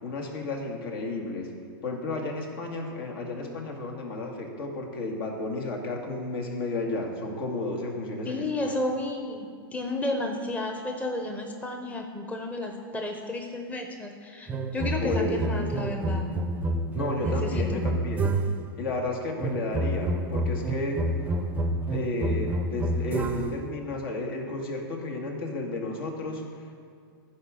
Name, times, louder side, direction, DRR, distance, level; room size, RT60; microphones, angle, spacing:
voice 1, 0.0-1.5 1.8-8.7 15.0-15.4 16.9-18.4 18.8-21.0 21.9-26.8, left 2 dB, 65° left, 1 dB, 2.1 m, -32 dB
voice 2, 8.2-16.3 17.2-17.8, left 2 dB, 10° left, 3 dB, 0.9 m, -32 dB
sound 1, 14.5-18.7 19.4-23.7, right 1 dB, 15° right, 0.7 m, -28 dB
14.0 x 4.9 x 6.3 m, 2.2 s
hypercardioid pair, 120°, 13 cm